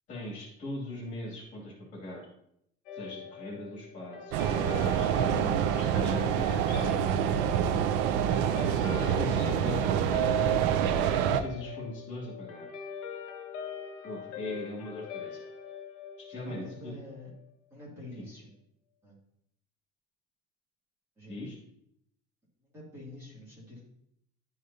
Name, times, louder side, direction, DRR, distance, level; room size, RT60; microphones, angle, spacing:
voice 1, 0.1-2.2 2.9-4.5 4.7-7.5 9.0-10.3 11.2-12.7 14.0-15.4 16.3-16.9 18.1-18.2 21.3-21.5, left 1 dB, 40° left, -3 dB, 2.6 m, -40 dB
Guitar, 2.9-17.4, left 7 dB, 75° left, 1.1 m, -41 dB
Berlin Hauptbahnhof - Night Ambience (Loud), 4.3-11.4, right 9 dB, 75° right, 0.5 m, -26 dB
voice 2, 16.4-17.3 17.7-18.5 19.0-19.2 21.2-21.4 22.6-23.9, left 1 dB, 15° right, -7 dB, 2.5 m, -47 dB
11.0 x 4.9 x 2.8 m, 0.75 s
cardioid pair, 180°, 19 cm